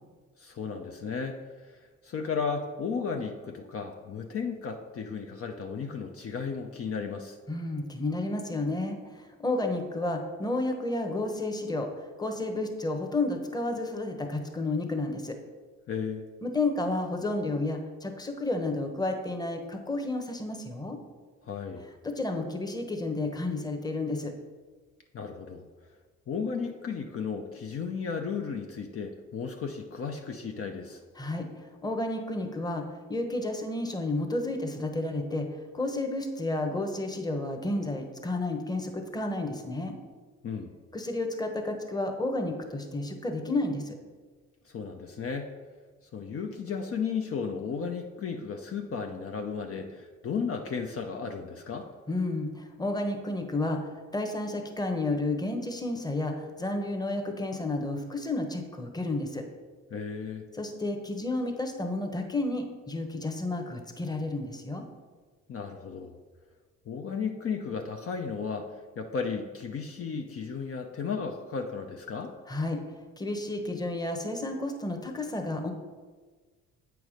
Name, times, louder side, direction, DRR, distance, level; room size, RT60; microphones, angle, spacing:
voice 1, 0.4-7.4 15.9-16.2 21.4-21.9 25.1-25.7 26.3-31.0 40.4-40.7 44.7-45.5 46.1-51.9 59.9-60.5 65.5-66.1 66.9-72.3, left 5 dB, 50° left, 3 dB, 0.6 m, -34 dB
voice 2, 7.5-15.4 16.4-21.0 22.0-24.3 31.2-40.0 40.9-43.9 52.1-59.4 60.5-64.8 72.5-75.7, left 2 dB, 15° left, 4 dB, 1.0 m, -31 dB
8.0 x 4.7 x 5.0 m, 1.4 s
cardioid pair, 90°, 30 cm